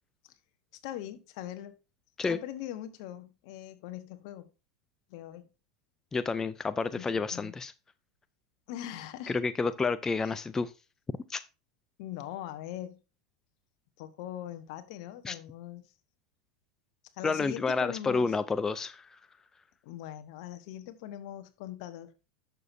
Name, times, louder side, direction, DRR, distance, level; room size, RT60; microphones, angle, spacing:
voice 1, 0.8-1.7 2.3-4.5 5.1-5.4 6.9-7.5 8.7-9.4 10.2-10.3 12.0-13.0 14.0-15.8 17.2-18.4 19.8-22.1, left 12 dB, 60° left, 1.2 m, -41 dB
voice 2, 6.1-7.7 9.3-10.7 11.3-11.4 15.2-15.3 17.2-19.1, left 4 dB, 15° left, 0.4 m, -30 dB
10.5 x 7.0 x 2.7 m
hypercardioid pair, 100°, 3 cm